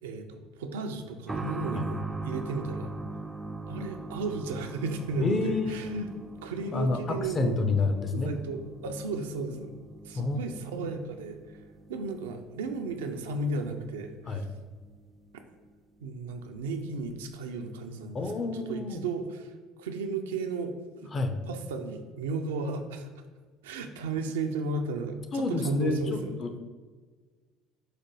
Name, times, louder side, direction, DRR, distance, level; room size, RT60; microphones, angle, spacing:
voice 1, 0.0-2.9 3.7-6.0 6.4-7.6 8.1-9.7 10.0-11.6 11.9-14.5 16.0-19.5 19.8-21.1 21.5-23.2 23.6-26.3, right 3 dB, 80° right, 5 dB, 0.4 m, -34 dB
sound 1, 1.3-15.7 16.0-16.1 17.0-17.1, right 3 dB, 15° right, 0.3 m, -41 dB
voice 2, 5.2-6.1 6.7-8.3 10.1-10.4 10.8-10.9 14.3-14.4 18.1-19.0 21.1-21.4 25.3-26.6, left 3 dB, 40° left, 7 dB, 0.6 m, -29 dB
4.9 x 2.2 x 4.6 m, 1.4 s
hypercardioid pair, 65°, 0 cm